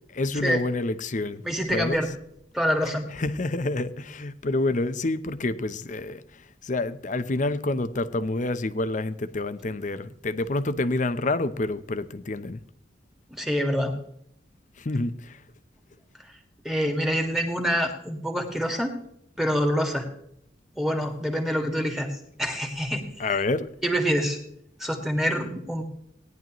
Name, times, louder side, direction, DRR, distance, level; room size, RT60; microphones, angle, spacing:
voice 1, 0.1-1.4 1.7-2.0 3.1-12.6 14.8-15.4 23.2-23.7, left 2 dB, 45° left, 13 dB, 0.7 m, -28 dB
voice 2, 1.4-2.1 2.5-3.1 13.3-14.0 16.6-19.0 19.4-20.1 20.8-22.1 22.4-23.3 23.8-24.4 24.8-25.8, equal, ahead, 2 dB, 1.9 m, -26 dB
17.5 x 10.5 x 3.0 m, 0.71 s
head